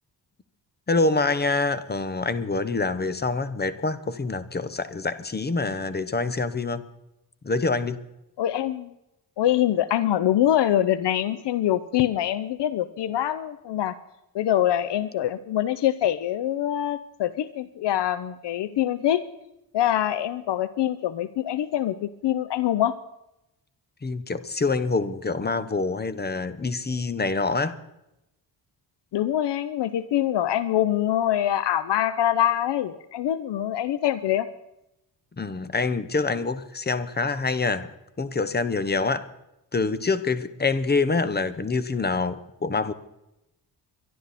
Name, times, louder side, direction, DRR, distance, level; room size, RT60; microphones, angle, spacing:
voice 1, 0.9-6.8 7.4-8.0 24.0-27.8 35.4-37.9 38.2-39.3 39.7-42.9, left 3 dB, 25° left, 14 dB, 0.9 m, -26 dB
voice 2, 8.4-8.9 9.4-13.9 14.3-19.2 19.7-22.9 29.1-34.5, left 11 dB, 80° left, 14 dB, 0.7 m, -24 dB
23.5 x 11.5 x 4.2 m, 0.88 s
wide cardioid pair, 120°, 41 cm